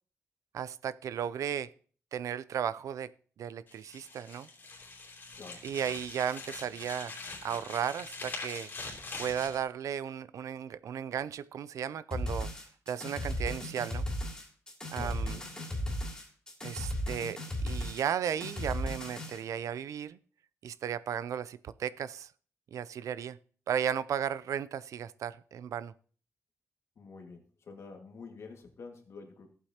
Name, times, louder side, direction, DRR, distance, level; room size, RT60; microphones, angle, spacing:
voice 1, 0.5-1.7 2.1-3.1 3.4-4.5 5.6-7.1 7.4-8.7 9.2-12.5 12.9-14.0 14.9-15.4 16.6-20.2 20.6-22.3 22.7-23.4 23.7-25.9, right 8 dB, 75° right, 0.4 m, -35 dB
sound 1, 3.7-9.6, left 3 dB, 40° left, 2.9 m, -43 dB
sound 2, 12.1-19.4, equal, 15° left, 2.8 m, -36 dB
voice 2, 15.0-15.9 27.0-29.5, left 4 dB, 55° left, 1.9 m, -48 dB
14.5 x 8.1 x 2.9 m
wide cardioid pair, 120°, 5 cm